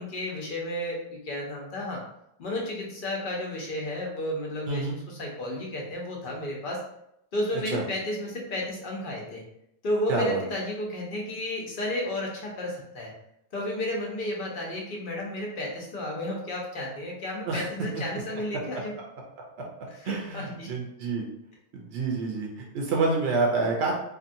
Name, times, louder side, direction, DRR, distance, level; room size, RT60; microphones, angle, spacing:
voice 1, 0.0-2.0 2.4-6.8 7.3-9.4 9.8-13.1 13.5-18.9 19.9-20.7, left 1 dB, 50° left, -2 dB, 0.8 m, -32 dB
voice 2, 10.1-10.4 17.5-17.7 20.1-21.3 21.7-23.9, right 3 dB, 65° right, -1 dB, 0.8 m, -27 dB
2.7 x 2.5 x 2.6 m, 0.77 s
omnidirectional pair, 1.2 m